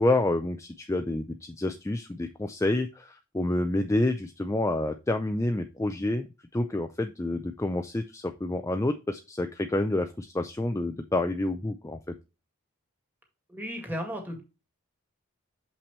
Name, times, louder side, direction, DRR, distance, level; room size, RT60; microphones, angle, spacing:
voice 1, 0.0-6.3 6.5-12.0, left 2 dB, 15° left, 8 dB, 0.4 m, -28 dB
voice 2, 13.5-14.4, equal, 10° right, 2 dB, 2.0 m, -34 dB
6.8 x 5.8 x 3.1 m, 0.29 s
head